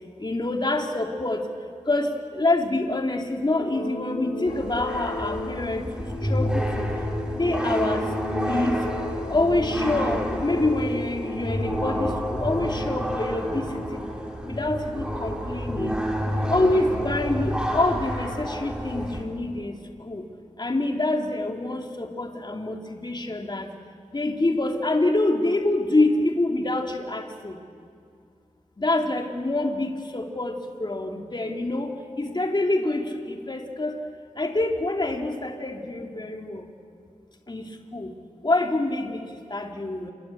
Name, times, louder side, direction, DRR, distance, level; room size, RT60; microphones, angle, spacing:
voice 1, 0.2-1.5 1.9-6.9 7.4-8.1 8.5-8.9 9.3-14.1 14.4-16.0 16.5-20.2 20.6-23.7 24.1-27.6 28.8-34.0 34.4-36.7 37.5-37.6 37.9-38.1 38.4-40.1, left 2 dB, 35° left, 3 dB, 2.6 m, -26 dB
sound 1, 3.6-12.1, left 2 dB, 85° left, 2.8 m, -35 dB
sound 2, 4.5-19.2, equal, 5° right, 4.5 m, -29 dB
28.0 x 23.5 x 8.4 m, 2.3 s
wide cardioid pair, 65°, 13 cm